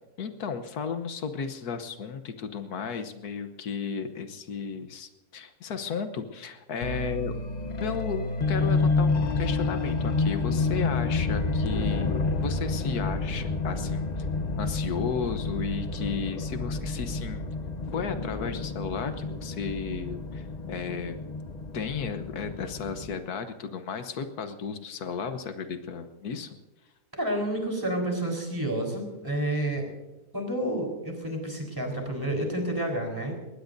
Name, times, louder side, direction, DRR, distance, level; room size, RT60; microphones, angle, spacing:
voice 1, 0.2-7.3 7.6-14.2 14.6-17.5 17.9-21.2 21.7-26.6, left 6 dB, 80° left, 9 dB, 1.5 m, -34 dB
sound 1, 6.8-23.1, left 3 dB, 35° left, 0.8 m, -29 dB
voice 2, 27.2-29.9 30.3-33.3, right 1 dB, 15° right, 2 dB, 4.1 m, -29 dB
21.5 x 18.5 x 2.7 m, 1.0 s
omnidirectional pair, 1.6 m